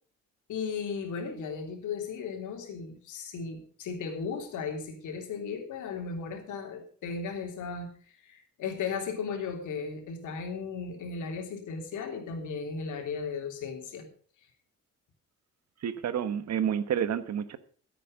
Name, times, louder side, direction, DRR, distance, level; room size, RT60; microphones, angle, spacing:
voice 1, 0.5-7.9 8.2-14.1, left 5 dB, 80° left, 3.3 m, -36 dB
voice 2, 15.8-17.6, right 8 dB, 60° right, 1.3 m, -29 dB
14.5 x 8.6 x 5.3 m
cardioid pair, 90°, 30 cm